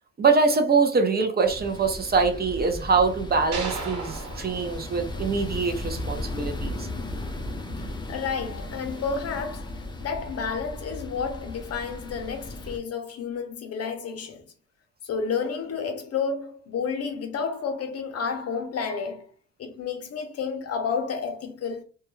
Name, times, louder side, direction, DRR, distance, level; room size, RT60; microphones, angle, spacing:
voice 1, 0.2-6.9, right 4 dB, 30° right, 0.5 m, -24 dB
sound 1, 1.4-12.8, left 1 dB, 15° left, 0.5 m, -36 dB
sound 2, 3.5-5.9, right 3 dB, 60° right, 1.1 m, -36 dB
voice 2, 7.8-14.4 15.0-19.3 19.6-21.8, left 5 dB, 55° left, 0.7 m, -31 dB
2.2 x 2.1 x 3.0 m
cardioid pair, 90°, 30 cm